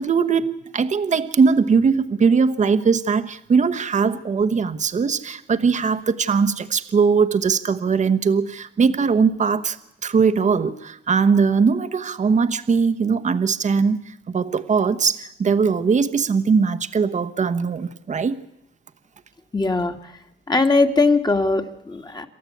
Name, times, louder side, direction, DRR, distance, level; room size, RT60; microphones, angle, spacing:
voice 1, 0.0-9.8 10.0-18.4, right 5 dB, 40° right, 8 dB, 1.2 m, -20 dB
voice 2, 19.5-19.9 20.5-22.3, left 3 dB, 20° left, 6 dB, 2.0 m, -20 dB
28.0 x 13.0 x 8.5 m, 0.81 s
cardioid pair, 90°, 20 cm